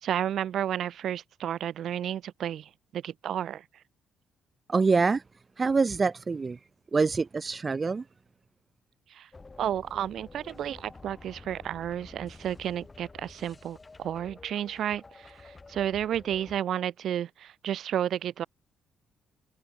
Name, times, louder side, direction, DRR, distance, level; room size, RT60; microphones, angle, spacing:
voice 1, 0.0-3.6 9.1-9.3 9.6-18.5, right 10 dB, 70° right, 2.7 m, -32 dB
voice 2, 4.7-5.2 5.6-6.6 6.9-8.0, right 4 dB, 30° right, 0.9 m, -25 dB
sound 1, 9.3-16.6, left 3 dB, 25° left, 7.4 m, -50 dB
cardioid pair, 90°, 0 cm